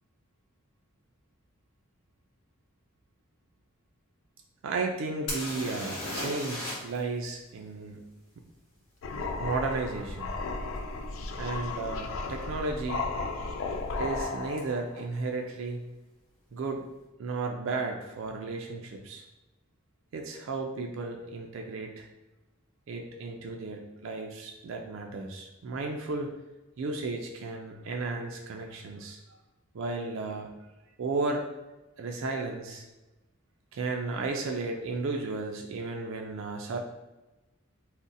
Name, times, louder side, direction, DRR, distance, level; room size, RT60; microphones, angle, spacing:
voice 1, 4.6-8.1 9.4-10.3 11.4-13.1 14.0-15.8 16.5-16.8 17.2-19.2 20.1-22.1 22.9-26.3 26.8-29.2 29.7-30.6 31.0-31.4 32.0-32.8 33.7-36.8, right 3 dB, 65° right, 2 dB, 0.3 m, -34 dB
sound 1, 5.3-7.0 7.3-7.4 10.8-10.9 11.5-11.7 11.9-12.5 14.6-14.7 14.9-15.0, left 1 dB, 85° left, 0.9 m, -36 dB
sound 2, 9.0-15.0, left 3 dB, 65° left, 0.3 m, -34 dB
2.5 x 2.0 x 3.9 m, 1.1 s
head